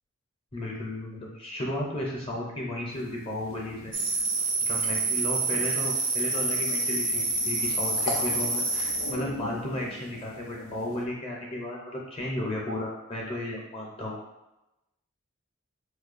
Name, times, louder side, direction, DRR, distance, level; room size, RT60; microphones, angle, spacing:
voice 1, 0.5-3.9 4.6-14.2, left 1 dB, 25° left, -3 dB, 0.5 m, -34 dB
sound 1, 2.9-11.1, left 3 dB, 85° left, 0.4 m, -41 dB
sound 2, 3.9-9.1, right 3 dB, 60° right, 0.6 m, -27 dB
4.9 x 2.2 x 2.5 m, 0.96 s
head